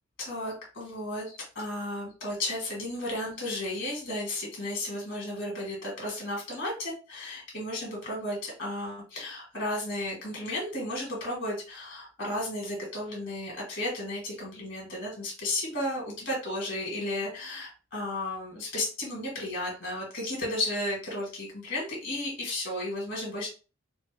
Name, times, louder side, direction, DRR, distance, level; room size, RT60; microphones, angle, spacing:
voice 1, 0.2-23.5, left 1 dB, 60° left, -3 dB, 1.7 m, -34 dB
4.1 x 2.2 x 3.3 m, 0.35 s
head